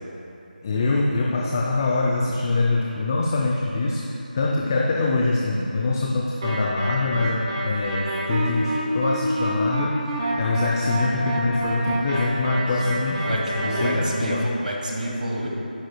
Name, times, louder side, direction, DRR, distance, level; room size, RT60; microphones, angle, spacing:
voice 1, 0.6-10.1 10.4-14.4, left 3 dB, 25° left, -2 dB, 0.4 m, -24 dB
sound 1, 6.4-13.9, right 1 dB, 30° right, 1.2 m, -27 dB
voice 2, 13.2-15.5, right 1 dB, 65° right, -2 dB, 1.8 m, -27 dB
11.5 x 8.6 x 2.2 m, 2.9 s
figure-of-eight pair, 165°, 5 cm